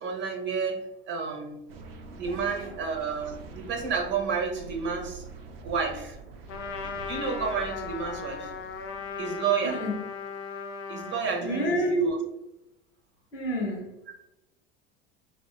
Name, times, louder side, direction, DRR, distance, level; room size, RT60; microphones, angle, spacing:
voice 1, 0.0-1.6 2.1-5.2 5.6-6.2 7.1-8.5 9.2-9.8 10.9-12.2, right 5 dB, 40° right, 0.7 m, -30 dB
sound 1, 1.7-9.9, right 3 dB, 80° right, 0.5 m, -45 dB
Trumpet, 6.5-11.4, left 5 dB, 45° left, 0.5 m, -37 dB
voice 2, 9.6-10.0 11.4-12.1 13.3-13.9, right 1 dB, 75° left, 1.0 m, -28 dB
3.6 x 2.1 x 2.3 m
hypercardioid pair, 85°, 30 cm